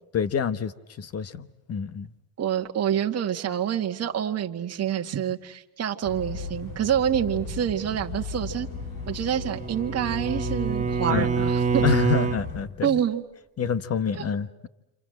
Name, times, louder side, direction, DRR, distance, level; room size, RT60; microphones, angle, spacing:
voice 1, 0.1-2.1 11.1-11.5 11.8-13.0 13.6-14.7, left 7 dB, 35° left, 1.2 m, -27 dB
voice 2, 2.4-8.7 9.1-11.8 12.8-13.2, right 9 dB, 40° right, 1.7 m, -27 dB
sound 1, 6.0-12.7, left 4 dB, 85° left, 3.3 m, -36 dB
Bowed string instrument, 9.0-12.4, right 5 dB, 15° right, 2.1 m, -26 dB
29.0 x 26.5 x 7.7 m
cardioid pair, 125°, 41 cm